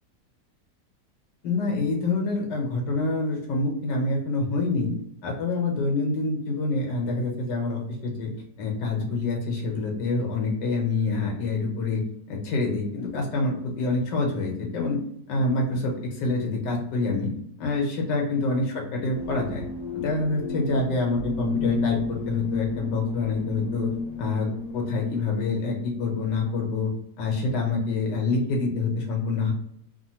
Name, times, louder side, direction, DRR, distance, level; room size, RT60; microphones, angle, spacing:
voice 1, 1.4-5.0 5.2-8.3 8.6-12.0 12.3-15.0 15.3-17.3 17.6-19.7 19.9-23.9 24.2-24.5 24.7-26.9 27.2-29.5, left 3 dB, 85° left, 0 dB, 1.6 m, -26 dB
sound 1, 19.1-25.2, left 4 dB, 50° left, 1.2 m, -32 dB
3.5 x 2.0 x 2.8 m, 0.72 s
omnidirectional pair, 1.8 m